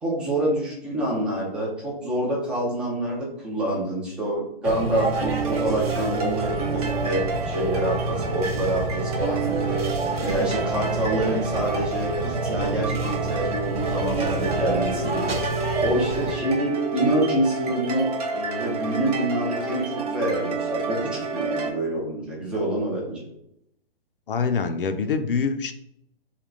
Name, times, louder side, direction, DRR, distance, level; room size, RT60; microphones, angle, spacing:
voice 1, 0.0-15.4 15.8-23.3, right 1 dB, 5° right, -3 dB, 0.4 m, -27 dB
sound 1, 4.6-16.3, right 2 dB, 85° right, 0.6 m, -28 dB
sound 2, 5.0-21.7, right 4 dB, 40° right, 0.7 m, -30 dB
voice 2, 24.3-25.7, left 5 dB, 65° left, 7 dB, 0.5 m, -25 dB
3.6 x 2.2 x 3.6 m, 0.76 s
figure-of-eight pair, 120°, 30 cm